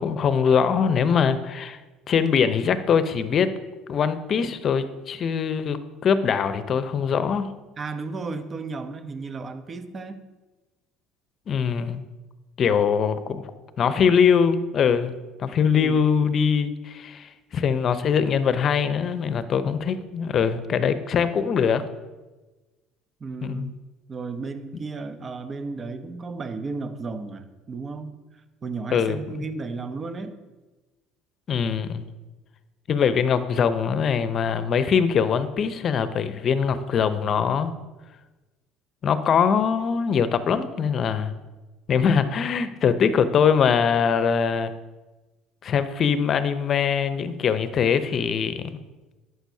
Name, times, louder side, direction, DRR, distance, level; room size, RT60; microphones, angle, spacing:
voice 1, 0.0-1.8 2.1-3.5 3.9-7.5 11.5-12.0 12.6-13.5 13.8-21.8 23.4-23.7 28.9-29.4 31.5-32.1 32.9-37.7 39.0-41.3 41.9-44.7 45.6-48.7, left 7 dB, 45° left, 12 dB, 0.7 m, -22 dB
voice 2, 7.8-10.2 15.7-16.0 23.2-23.8 24.1-28.1 28.6-30.3, right 4 dB, 35° right, 10 dB, 0.9 m, -34 dB
11.5 x 7.8 x 2.8 m, 1.2 s
hypercardioid pair, 65°, 0 cm